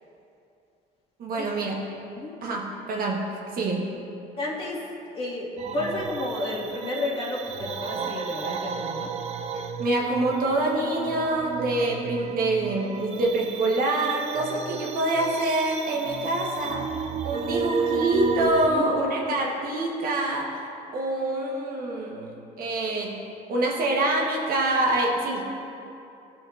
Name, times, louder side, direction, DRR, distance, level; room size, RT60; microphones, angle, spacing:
voice 1, 1.2-1.8 2.4-3.3 3.5-3.9 9.8-20.6 20.9-23.2 23.5-25.4, right 2 dB, 60° right, -1 dB, 1.2 m, -26 dB
voice 2, 4.4-4.8 5.1-5.5 5.7-9.1 18.6-18.8, left 2 dB, 35° left, -5 dB, 1.7 m, -31 dB
sound 1, 5.6-18.7, right 6 dB, 40° right, 0.4 m, -33 dB
12.5 x 6.1 x 2.5 m, 2.8 s
cardioid pair, 110°, 17 cm